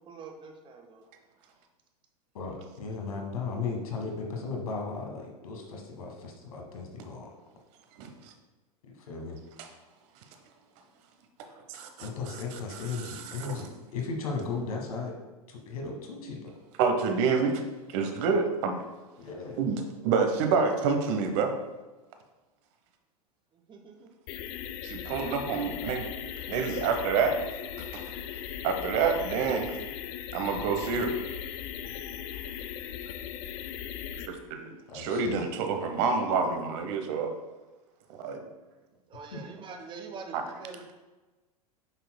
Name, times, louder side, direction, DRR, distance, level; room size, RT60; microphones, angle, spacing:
voice 1, 0.1-1.1 23.5-24.1 39.1-40.9, right 4 dB, 25° right, 4 dB, 0.9 m, -45 dB
voice 2, 2.3-7.3 9.0-9.4 12.0-15.1 15.5-16.5 19.2-19.6 26.5-26.8 34.9-35.5 39.3-39.4, left 4 dB, 65° left, 1 dB, 1.5 m, -36 dB
voice 3, 8.0-8.3 11.6-12.1 12.9-13.6 16.8-17.6 17.9-18.8 19.6-21.5 24.8-26.1 26.5-27.4 27.8-28.1 28.6-29.7 30.3-31.1 34.3-34.7 34.9-37.3 38.1-38.4 40.3-40.4, right 5 dB, 45° right, 6 dB, 0.9 m, -28 dB
sound 1, 24.3-34.3, left 9 dB, 40° left, 0.5 m, -38 dB
8.0 x 5.9 x 2.2 m, 1.2 s
figure-of-eight pair, 90°, 20 cm